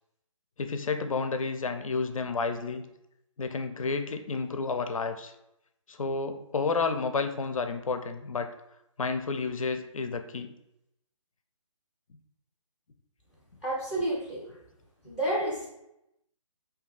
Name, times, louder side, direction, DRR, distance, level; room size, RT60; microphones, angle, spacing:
voice 1, 0.6-2.8 3.4-5.3 5.9-8.5 9.0-10.5, left 4 dB, 75° left, 8 dB, 0.4 m, -31 dB
voice 2, 13.6-14.4 15.0-15.7, right 1 dB, 5° right, -6 dB, 0.5 m, -30 dB
2.7 x 2.3 x 3.6 m, 0.84 s
figure-of-eight pair, 145°, 17 cm